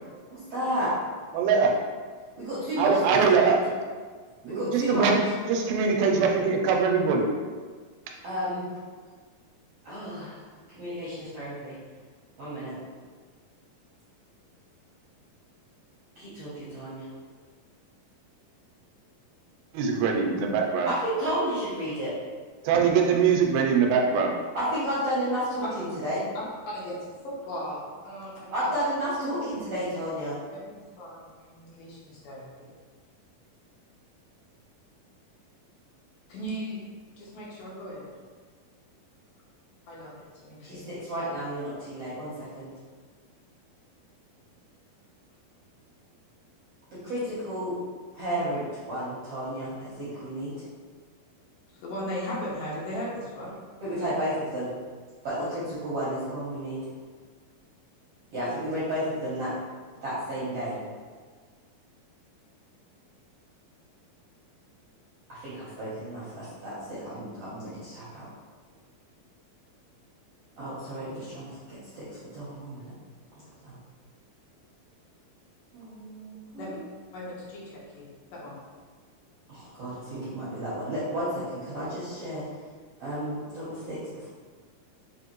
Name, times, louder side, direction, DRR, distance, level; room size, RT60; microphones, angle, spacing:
voice 1, 0.3-0.9 2.4-3.0 3.4-3.6 4.4-5.1 8.2-8.7 9.8-10.4 10.7-11.8 12.4-12.7 16.2-17.1 20.8-22.1 24.5-26.2 28.5-30.4 40.6-42.7 47.0-47.8 48.2-50.5 53.8-54.7 55.2-55.4 55.8-56.8 58.3-59.5 60.0-60.8 65.3-68.3 70.6-72.9 73.3-73.8 75.7-76.8 79.5-82.4 83.0-84.3, equal, 70° right, -11 dB, 1.5 m, -32 dB
voice 2, 1.3-1.7 2.8-3.6 4.4-7.3 19.7-20.9 22.6-24.4, right 5 dB, 85° right, 2 dB, 2.4 m, -22 dB
voice 3, 26.3-28.7 30.5-32.5 36.3-36.8 37.2-38.1 39.9-40.8 51.7-53.5 76.6-76.8 77.1-78.6, equal, 75° left, -6 dB, 2.3 m, -37 dB
5.5 x 2.6 x 3.0 m, 1.5 s
omnidirectional pair, 4.1 m